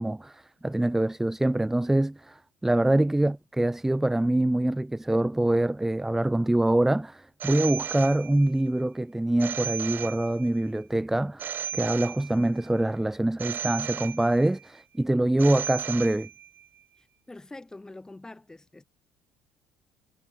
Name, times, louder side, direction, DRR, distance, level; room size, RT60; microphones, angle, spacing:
voice 1, 0.0-16.3, right 1 dB, 10° right, 0.7 m, -25 dB
Telephone, 7.4-8.7 9.4-10.7 11.4-12.7 13.4-14.7 15.4-16.6, right 9 dB, 45° right, 2.5 m, -35 dB
voice 2, 17.0-18.8, left 2 dB, 15° left, 4.3 m, -45 dB
figure-of-eight pair, 55°, 5 cm